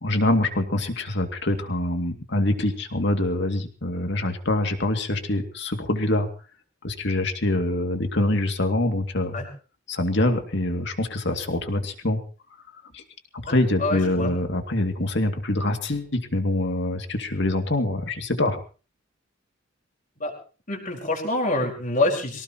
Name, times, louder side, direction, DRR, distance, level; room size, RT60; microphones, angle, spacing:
voice 1, 0.0-6.3 6.8-9.4 9.9-12.2 12.9-13.0 13.4-18.6, left 1 dB, 60° left, 5 dB, 2.4 m, -25 dB
voice 2, 13.5-14.4 20.2-20.3 20.7-22.4, left 2 dB, 40° left, 1 dB, 4.9 m, -26 dB
24.0 x 18.0 x 3.0 m, 0.37 s
head